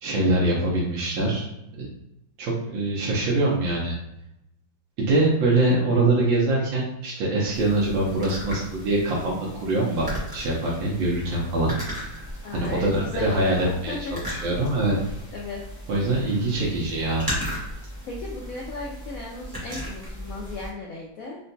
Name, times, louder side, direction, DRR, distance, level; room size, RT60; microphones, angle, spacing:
voice 1, 0.0-1.5 1.8-1.9 2.4-3.9 5.0-10.1 10.3-11.7 12.5-15.0 15.9-17.3, right 2 dB, 80° right, -4 dB, 1.5 m, -23 dB
sound 1, 7.5-20.7, equal, 25° right, 0.5 m, -36 dB
voice 2, 12.4-14.1 15.3-15.6 18.1-21.4, left 3 dB, 80° left, -3 dB, 0.7 m, -35 dB
3.8 x 2.2 x 2.6 m, 0.88 s
omnidirectional pair, 2.1 m